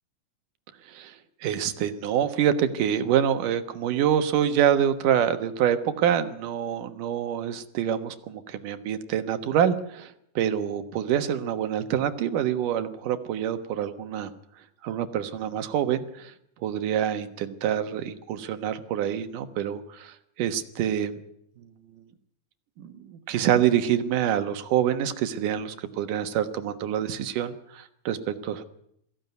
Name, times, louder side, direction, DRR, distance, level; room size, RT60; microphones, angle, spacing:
voice 1, 0.9-1.2 1.4-14.3 14.8-16.3 16.6-21.2 22.8-28.6, right 9 dB, 80° right, 9 dB, 2.9 m, -26 dB
22.0 x 16.0 x 9.4 m, 0.75 s
omnidirectional pair, 3.7 m